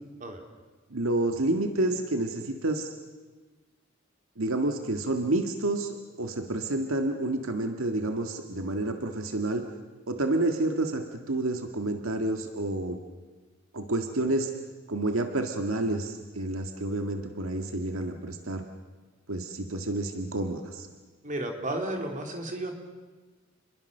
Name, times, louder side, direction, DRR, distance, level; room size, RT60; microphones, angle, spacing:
voice 1, 0.9-2.9 4.4-9.6 10.1-13.0 13.7-14.5 14.9-18.7 19.3-20.9, right 2 dB, 85° right, 5 dB, 1.9 m, -29 dB
voice 2, 21.2-22.7, right 1 dB, 40° right, 3 dB, 3.4 m, -33 dB
29.0 x 22.0 x 6.7 m, 1.3 s
head